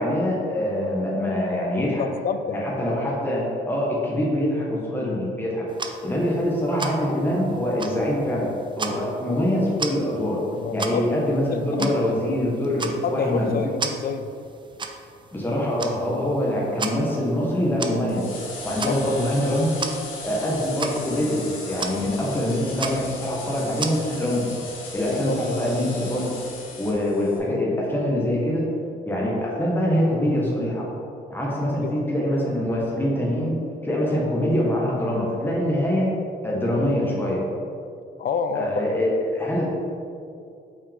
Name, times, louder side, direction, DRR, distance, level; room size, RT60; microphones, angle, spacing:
voice 1, 0.0-2.1 2.5-5.6 6.0-8.5 8.8-10.4 10.7-13.7 15.3-18.3 18.6-19.8 20.2-24.5 24.9-26.3 26.8-28.6 29.1-30.8 31.3-33.6 33.8-36.1 36.4-37.4 38.5-39.7, left 1 dB, 10° left, -4 dB, 1.3 m, -24 dB
voice 2, 2.0-2.8 10.5-11.0 11.5-11.9 13.0-14.3 18.9-19.2 25.1-25.6 31.8-32.0 38.2-38.7, left 6 dB, 50° left, 9 dB, 0.4 m, -28 dB
sound 1, 5.7-24.5, right 4 dB, 25° right, 0.5 m, -37 dB
sound 2, 18.1-27.4, left 3 dB, 90° left, 1.2 m, -37 dB
5.9 x 4.7 x 3.5 m, 2.5 s
cardioid pair, 90°, 20 cm